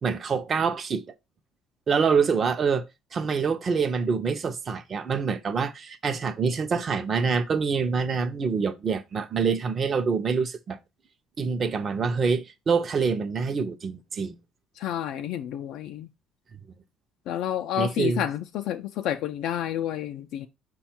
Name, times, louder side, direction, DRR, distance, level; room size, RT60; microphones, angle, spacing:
voice 1, 0.0-1.0 1.9-2.9 3.1-10.8 11.4-14.3 17.8-18.2, right 5 dB, 35° right, 0.5 m, -26 dB
voice 2, 14.8-16.1 17.3-20.5, left 11 dB, 75° left, 0.3 m, -30 dB
5.2 x 2.3 x 4.3 m
cardioid pair, 120°, 0 cm